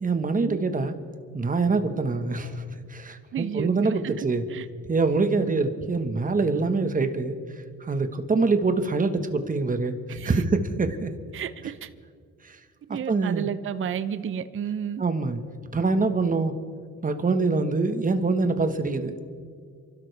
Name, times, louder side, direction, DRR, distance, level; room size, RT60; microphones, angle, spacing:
voice 1, 0.0-0.9 1.3-2.6 2.9-4.4 4.9-7.3 7.8-10.0 10.2-11.1 12.4-12.6 13.1-13.5 15.0-15.4 15.7-16.5 17.0-19.2, right 3 dB, 25° right, 8 dB, 1.4 m, -24 dB
voice 2, 3.3-4.7 5.4-5.5 10.1-10.4 11.3-11.9 12.9-15.0, right 8 dB, 45° right, 13 dB, 0.6 m, -32 dB
28.5 x 12.5 x 3.4 m, 2.1 s
cardioid pair, 90°, 30 cm